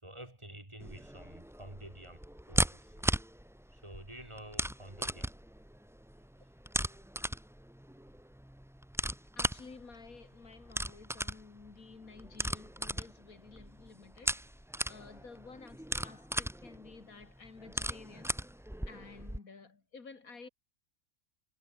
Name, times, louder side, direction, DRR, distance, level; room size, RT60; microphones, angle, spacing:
voice 1, 0.0-3.1 3.7-5.3 6.1-6.5 6.9-7.0, right 1 dB, 20° right, 2.9 m, -50 dB
sound 1, 0.8-19.4, equal, 5° right, 0.4 m, -37 dB
voice 2, 9.4-14.6 14.9-20.5, left 4 dB, 75° left, 2.9 m, -52 dB
omnidirectional pair, 1.5 m